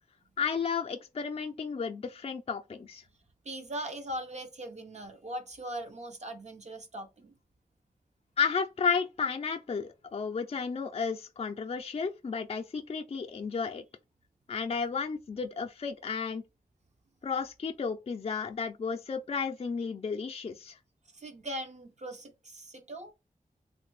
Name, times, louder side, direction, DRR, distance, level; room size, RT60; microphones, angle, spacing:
voice 1, 0.4-3.0 8.4-13.8 14.5-16.4 17.2-20.8, left 5 dB, 45° left, 0.4 m, -33 dB
voice 2, 3.4-7.4 21.1-23.1, right 1 dB, 50° right, 0.6 m, -40 dB
3.2 x 2.1 x 3.0 m
wide cardioid pair, 95°, 15 cm